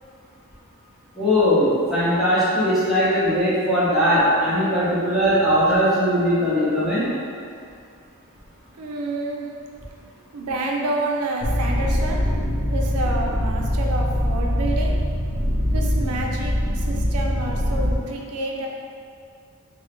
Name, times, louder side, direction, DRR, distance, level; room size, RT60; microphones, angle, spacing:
voice 1, 1.1-7.1, equal, ahead, -12 dB, 0.7 m, -19 dB
voice 2, 8.8-9.5 10.0-12.2 12.7-15.0 15.7-18.7, right 2 dB, 85° right, 0 dB, 0.4 m, -29 dB
sound 1, 11.4-18.0, equal, 45° left, 0.6 m, -23 dB
3.4 x 2.0 x 2.9 m, 2.3 s
head